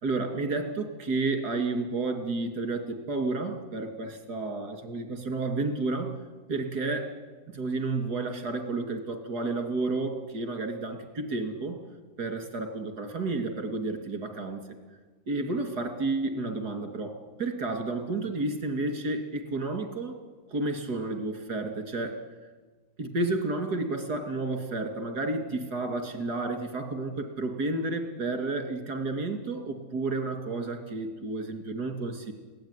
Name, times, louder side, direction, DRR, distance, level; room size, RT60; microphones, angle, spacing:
voice 1, 0.0-6.1 6.5-7.1 7.5-11.8 12.2-14.6 15.3-20.2 20.5-22.2 23.0-32.3, right 3 dB, 80° right, 5 dB, 3.2 m, -31 dB
22.0 x 17.0 x 9.8 m, 1.3 s
omnidirectional pair, 1.7 m